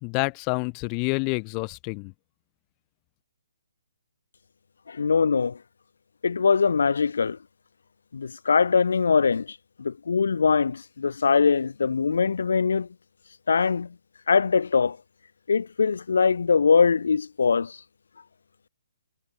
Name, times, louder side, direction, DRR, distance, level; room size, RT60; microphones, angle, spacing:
voice 1, 0.0-2.1, left 39 dB, 20° left, 1.5 m, -28 dB
voice 2, 4.9-5.6 6.2-7.4 8.1-12.9 13.5-13.9 14.3-15.0 15.5-17.8, left 5 dB, 75° left, 1.2 m, -22 dB
hypercardioid pair, 165°, 0 cm